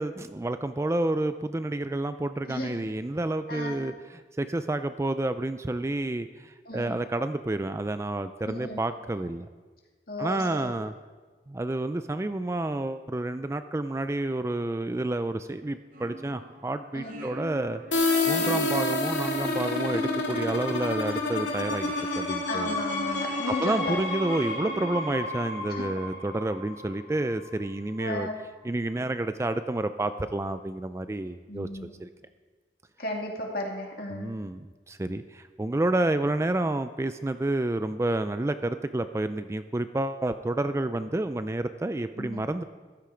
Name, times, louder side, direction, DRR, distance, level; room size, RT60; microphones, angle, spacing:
voice 1, 0.0-9.5 10.2-10.9 11.5-17.8 18.3-22.8 23.6-28.3 28.6-31.7 32.0-32.1 34.1-42.6, right 2 dB, 15° right, 10 dB, 0.3 m, -29 dB
voice 2, 2.5-2.8 3.5-3.8 6.7-6.9 8.4-8.8 10.1-10.7 16.9-17.2 18.4-18.6 21.1-21.2 22.5-24.0 25.7-25.9 28.0-28.4 31.5-31.9 33.0-34.3 42.2-42.4, left 1 dB, 55° left, 0 dB, 2.5 m, -34 dB
sound 1, 15.9-25.7, right 1 dB, 50° right, 1.0 m, -42 dB
sound 2, 17.9-27.5, left 2 dB, 85° left, 2.8 m, -29 dB
15.0 x 11.5 x 5.0 m, 1.4 s
head